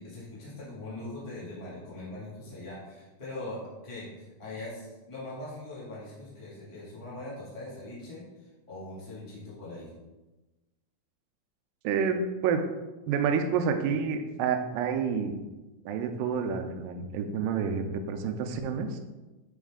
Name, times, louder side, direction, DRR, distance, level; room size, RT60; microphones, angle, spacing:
voice 1, 0.0-8.2 8.7-9.9, left 2 dB, 25° left, -8 dB, 0.7 m, -41 dB
voice 2, 11.8-12.6 13.1-15.3 15.9-19.0, right 6 dB, 85° right, 5 dB, 2.2 m, -29 dB
7.1 x 4.1 x 3.6 m, 1.1 s
omnidirectional pair, 4.1 m